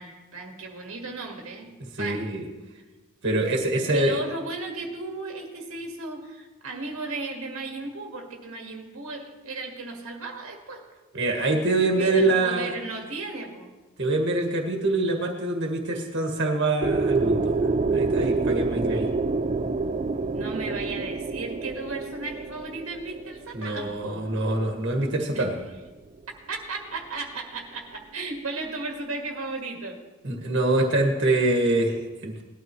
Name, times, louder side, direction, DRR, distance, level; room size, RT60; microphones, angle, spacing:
voice 1, 0.0-1.7 2.0-2.3 3.9-10.8 12.0-13.7 20.3-24.2 25.3-25.5 26.5-30.0, right 3 dB, 75° right, 1 dB, 1.8 m, -35 dB
voice 2, 2.0-2.4 3.2-4.2 11.1-12.7 14.0-17.5 17.9-19.1 23.5-25.6 30.2-32.4, right 2 dB, 55° right, 2 dB, 1.8 m, -25 dB
sound 1, 16.8-24.6, right 3 dB, 30° right, 0.4 m, -27 dB
19.0 x 12.5 x 3.1 m, 1.2 s
head